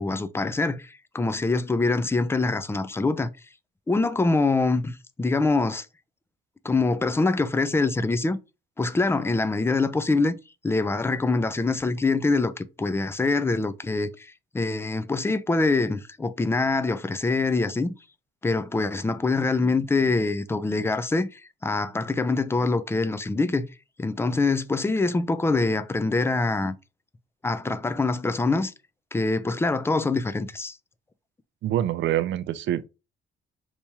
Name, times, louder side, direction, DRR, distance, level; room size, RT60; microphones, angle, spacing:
voice 1, 0.0-3.3 3.9-5.9 6.6-8.4 8.8-10.4 10.6-17.9 18.4-23.7 24.0-26.8 27.4-28.7 29.1-30.8, left 3 dB, 10° left, 0.3 m, -24 dB
voice 2, 31.6-32.9, right 12 dB, 70° right, 0.4 m, -25 dB
3.4 x 2.9 x 2.8 m
cardioid pair, 90°, 20 cm